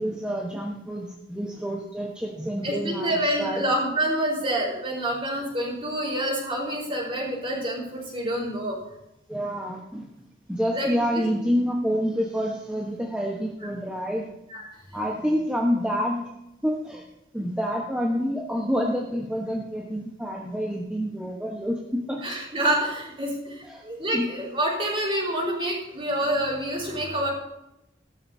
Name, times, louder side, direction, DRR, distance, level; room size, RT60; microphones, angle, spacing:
voice 1, 0.0-3.6 9.3-10.1 10.5-14.3 14.9-16.2 16.6-17.0 17.3-22.2 23.6-23.8 24.1-24.3, equal, 5° right, -2 dB, 1.1 m, -28 dB
voice 2, 2.6-8.8 10.7-11.2 13.6-13.7 14.5-14.6 22.2-27.3, right 1 dB, 30° right, -3 dB, 4.5 m, -27 dB
16.0 x 13.0 x 2.8 m, 0.88 s
head